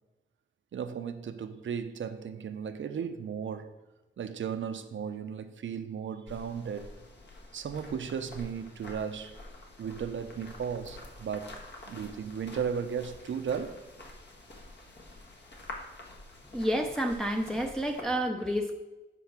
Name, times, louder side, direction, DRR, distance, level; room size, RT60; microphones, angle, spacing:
voice 1, 0.7-3.7 4.2-6.9 7.5-9.4 9.8-11.5 11.8-13.8, right 7 dB, 70° right, 0.7 m, -35 dB
sound 1, 6.3-18.0, left 2 dB, 60° left, 1.6 m, -48 dB
voice 2, 16.5-18.7, equal, 5° left, 0.6 m, -29 dB
8.4 x 4.6 x 5.9 m
wide cardioid pair, 95°, 21 cm